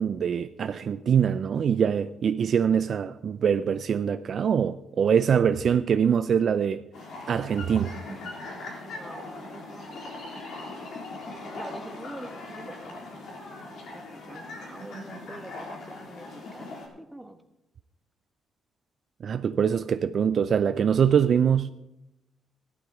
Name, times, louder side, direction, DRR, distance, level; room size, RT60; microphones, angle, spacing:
voice 1, 0.0-6.8 7.3-7.9 19.2-21.7, right 7 dB, 55° right, 0.4 m, -23 dB
sound 1, 6.9-16.9, left 2 dB, 75° left, 3.7 m, -40 dB
voice 2, 8.8-10.0 11.5-13.3 13.9-17.4, right 1 dB, 10° right, 1.5 m, -45 dB
14.0 x 12.0 x 4.9 m
cardioid pair, 90°, 0 cm